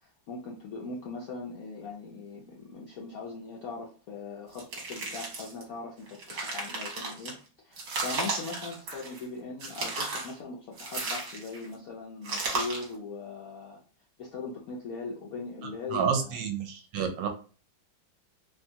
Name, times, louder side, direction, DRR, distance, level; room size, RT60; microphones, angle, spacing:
voice 1, 0.0-7.4 7.6-13.8 14.2-16.4, left 4 dB, 70° left, -3 dB, 0.8 m, -40 dB
sound 1, 4.5-5.6 6.1-7.3 7.8-9.2 9.6-10.3 10.8-11.7 12.2-12.9, right 3 dB, 55° right, 1.2 m, -34 dB
voice 2, 15.9-17.3, right 7 dB, 75° right, 4 dB, 1.2 m, -29 dB
3.4 x 2.3 x 2.7 m, 0.38 s
omnidirectional pair, 2.1 m